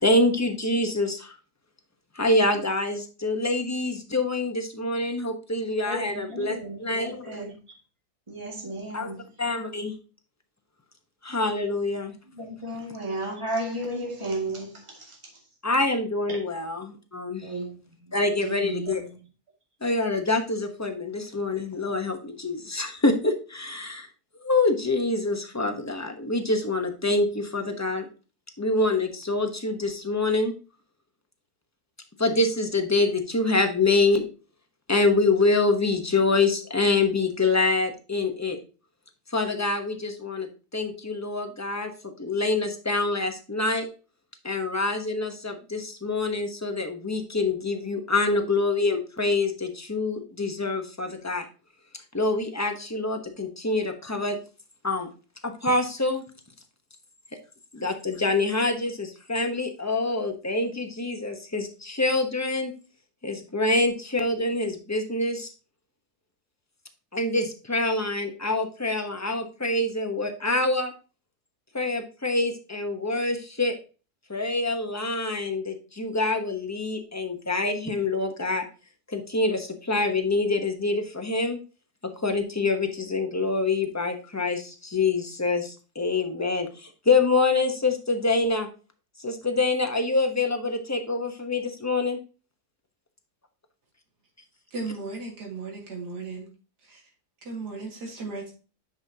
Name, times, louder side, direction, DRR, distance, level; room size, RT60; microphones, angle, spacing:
voice 1, 0.0-1.3 2.2-7.4 8.9-9.1 9.4-9.9 11.2-12.1 15.6-17.5 18.1-19.0 19.8-24.1 24.4-28.0 28.6-30.5 32.2-34.2 34.9-38.6 39.3-40.5 40.7-43.9 44.4-51.4 52.1-54.4 54.8-55.1 55.4-56.2 57.7-62.7 63.2-65.5 67.1-70.9 71.7-73.7 74.3-78.6 79.1-81.6 82.2-88.7 89.2-92.2, left 3 dB, 15° left, 0.7 m, -26 dB
voice 2, 5.8-7.5 8.3-9.2 12.3-15.2 16.3-16.4 17.4-17.7 18.4-19.2, right 1 dB, 20° right, 2.2 m, -34 dB
voice 3, 94.7-96.5 96.8-97.0 97.4-98.5, right 3 dB, 90° right, 2.5 m, -36 dB
9.7 x 5.4 x 2.8 m
omnidirectional pair, 1.7 m